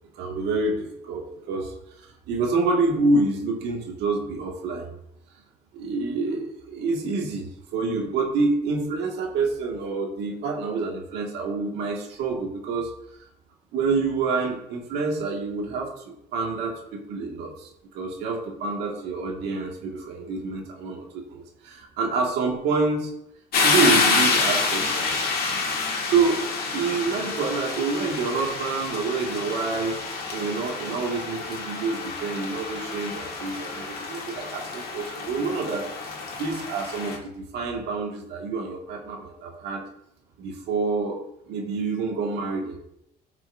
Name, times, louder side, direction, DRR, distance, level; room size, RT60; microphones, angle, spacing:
voice 1, 0.1-4.9 5.7-12.9 13.7-23.1 23.6-25.2 25.5-25.7 26.1-26.4 26.7-30.0 30.3-35.9 36.4-39.8 40.4-41.2 41.5-42.8, right 3 dB, 85° right, 0 dB, 1.9 m, -27 dB
sound 1, 23.5-37.2, left 4 dB, 65° left, 1.9 m, -28 dB
12.5 x 6.0 x 2.6 m, 0.78 s
cardioid pair, 110°, 17 cm